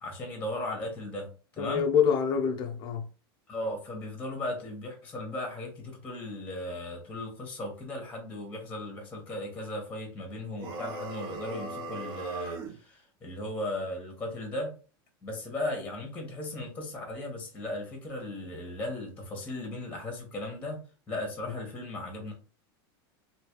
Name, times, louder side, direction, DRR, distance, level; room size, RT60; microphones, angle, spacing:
voice 1, 0.0-1.9 3.5-14.7 15.2-22.3, left 1 dB, 10° left, 1.3 m, -37 dB
voice 2, 1.6-3.1, left 7 dB, 35° left, 0.6 m, -26 dB
sound 1, 10.6-12.8, right 3 dB, 65° right, 1.0 m, -38 dB
3.2 x 2.8 x 3.0 m
supercardioid pair, 135°, 13 cm